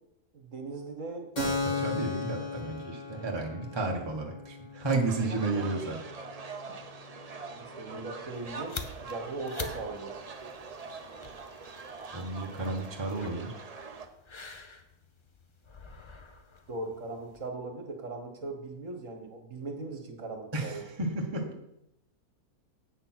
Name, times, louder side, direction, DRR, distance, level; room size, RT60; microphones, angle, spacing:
voice 1, 0.3-1.3 5.5-5.6 7.5-10.1 16.7-20.8, right 3 dB, 55° right, 4 dB, 1.6 m, -39 dB
Keyboard (musical), 1.4-8.7, left 3 dB, 30° left, 1.9 m, -38 dB
voice 2, 1.4-6.0 12.1-13.5 20.5-21.4, right 3 dB, 20° right, 1 dB, 1.2 m, -32 dB
sound 1, 5.1-14.1, right 4 dB, 35° right, 0.6 m, -43 dB
sound 2, 8.3-17.5, left 4 dB, 50° left, 0.3 m, -47 dB
8.5 x 6.7 x 5.9 m, 0.84 s
omnidirectional pair, 1.6 m